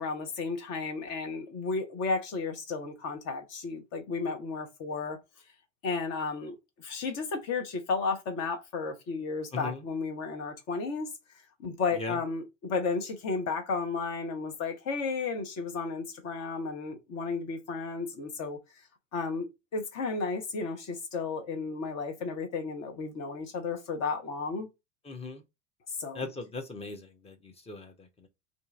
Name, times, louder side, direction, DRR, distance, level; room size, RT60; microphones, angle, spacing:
voice 1, 0.0-5.2 5.8-11.1 11.6-18.6 19.1-24.7 26.0-26.3, left 4 dB, 45° left, 1.0 m, -33 dB
voice 2, 25.1-25.4 26.1-27.9, left 3 dB, 15° left, 0.8 m, -38 dB
2.6 x 2.6 x 2.4 m
figure-of-eight pair, 75°, 38 cm